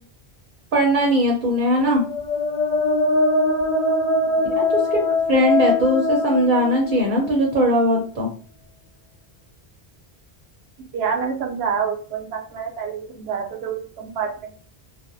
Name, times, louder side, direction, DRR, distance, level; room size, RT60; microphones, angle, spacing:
voice 1, 0.7-2.0 4.6-5.0 5.3-8.3, equal, 55° right, 0 dB, 0.7 m, -19 dB
sound 1, 1.9-7.7, left 2 dB, 50° left, 0.7 m, -22 dB
voice 2, 4.2-4.5 4.8-5.1 10.9-14.5, right 6 dB, 85° right, 3 dB, 0.9 m, -28 dB
2.4 x 2.1 x 2.5 m, 0.41 s
omnidirectional pair, 1.0 m